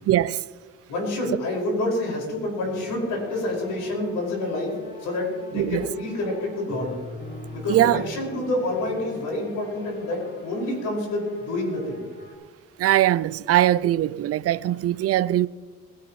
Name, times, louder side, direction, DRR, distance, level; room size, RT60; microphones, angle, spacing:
voice 1, 0.1-0.4 5.6-5.8 7.7-8.0 12.8-15.5, right 13 dB, 55° right, 0.4 m, -21 dB
voice 2, 0.9-4.7 5.0-6.9 7.5-12.0, left 1 dB, 85° left, 5.5 m, -28 dB
sound 1, 2.6-12.3, left 1 dB, 40° left, 5.3 m, -42 dB
21.0 x 13.0 x 3.1 m
cardioid pair, 90°, 30 cm